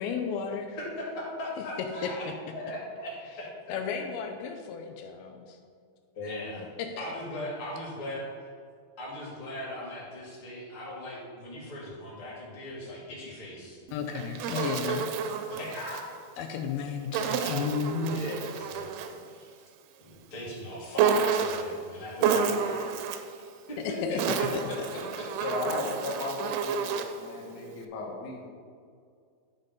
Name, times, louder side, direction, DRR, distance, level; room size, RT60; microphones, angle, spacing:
voice 1, 0.0-0.8 2.0-2.1 3.7-5.6 6.8-7.1 13.9-15.1 16.4-18.3 23.8-24.6, left 6 dB, 85° left, 4 dB, 2.5 m, -33 dB
voice 2, 0.8-2.3 2.5-3.8 6.1-6.7 7.0-8.5 9.0-13.8 14.5-16.1 17.3-17.6 18.1-18.9 19.3-19.6 20.0-22.9 23.7-25.5, left 1 dB, 40° left, -6 dB, 2.7 m, -39 dB
Insect, 13.9-16.1 17.1-19.2 21.0-21.8 22.2-23.3 24.0-27.2, right 6 dB, 80° right, 2.3 m, -30 dB
voice 3, 25.4-28.5, left 3 dB, 70° left, -3 dB, 1.6 m, -35 dB
12.0 x 4.1 x 5.1 m, 2.2 s
omnidirectional pair, 4.5 m